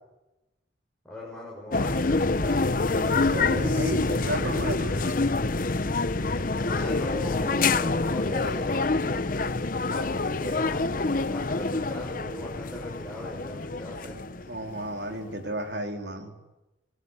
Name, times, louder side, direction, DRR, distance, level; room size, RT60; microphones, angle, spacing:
voice 1, 1.0-2.7 6.6-9.2 9.8-14.2, left 1 dB, 5° left, -4 dB, 6.2 m, -38 dB
sound 1, 1.7-15.1, left 3 dB, 45° left, 0.8 m, -27 dB
voice 2, 3.0-5.1 14.5-16.3, right 1 dB, 60° right, 4 dB, 4.0 m, -33 dB
27.5 x 19.5 x 9.7 m, 1.0 s
head